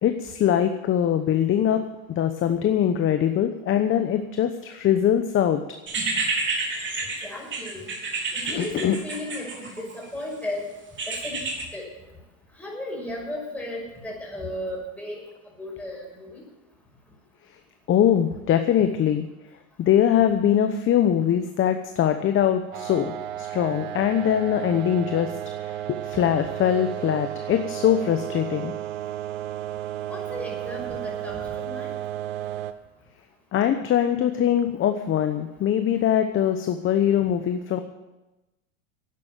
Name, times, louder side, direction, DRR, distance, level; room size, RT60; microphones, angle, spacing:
voice 1, 0.0-5.6 8.5-9.0 17.9-19.3 19.8-25.4 25.6-28.7 33.5-37.8, left 10 dB, 30° left, 8 dB, 1.0 m, -22 dB
sound 1, 5.9-10.1 11.0-11.6, right 3 dB, 25° right, 3.4 m, -29 dB
voice 2, 7.2-7.9 8.3-10.7 11.1-11.9 12.6-15.2 15.6-16.4 30.1-31.9 37.2-37.3, left 1 dB, 5° left, -2 dB, 6.0 m, -35 dB
sound 2, 22.7-32.7, right 12 dB, 70° right, 1.3 m, -33 dB
11.5 x 9.6 x 9.1 m, 1.0 s
supercardioid pair, 115°, 43 cm